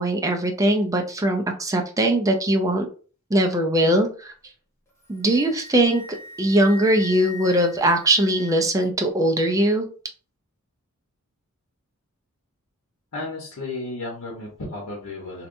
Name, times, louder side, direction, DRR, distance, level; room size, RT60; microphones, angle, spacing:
voice 1, 0.0-2.9 3.3-4.3 5.1-6.0 6.4-9.9, right 1 dB, 15° right, 3 dB, 0.4 m, -20 dB
Wind instrument woodwind instrument, 4.9-8.8, left 2 dB, 10° left, 0.7 m, -41 dB
voice 2, 13.1-15.5, left 2 dB, 85° left, -2 dB, 1.0 m, -33 dB
3.3 x 2.8 x 2.6 m, 0.39 s
head